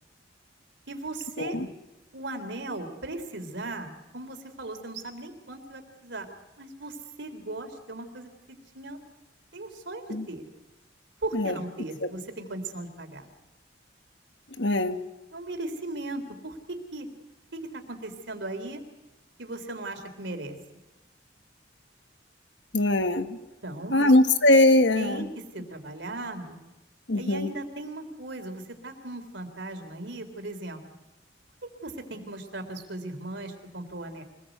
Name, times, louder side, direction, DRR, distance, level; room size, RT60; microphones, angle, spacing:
voice 1, 0.9-1.6 2.1-6.3 6.6-9.0 9.5-10.4 11.2-13.3 15.3-17.1 17.5-18.8 19.4-20.6 23.6-24.1 25.0-25.3 25.5-26.6 27.2-30.8 31.6-34.2, right 2 dB, 70° right, 6 dB, 3.6 m, -37 dB
voice 2, 14.6-15.0 22.7-23.4 23.9-25.2 27.1-27.5, left 1 dB, 70° left, 9 dB, 1.7 m, -21 dB
25.0 x 19.5 x 8.0 m, 1.1 s
head